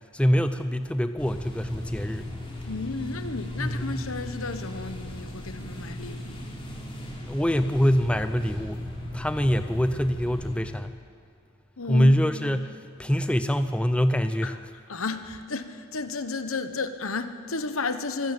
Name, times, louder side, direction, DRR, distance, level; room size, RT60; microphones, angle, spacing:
voice 1, 0.1-2.3 3.6-4.1 7.2-11.0 11.9-14.6, equal, 5° left, 0.6 m, -24 dB
sound 1, 1.2-10.6, left 1 dB, 25° left, 3.3 m, -37 dB
voice 2, 2.7-6.5 11.8-12.1 14.4-14.5 14.9-18.3, left 3 dB, 75° left, 1.2 m, -32 dB
25.0 x 12.5 x 8.9 m
head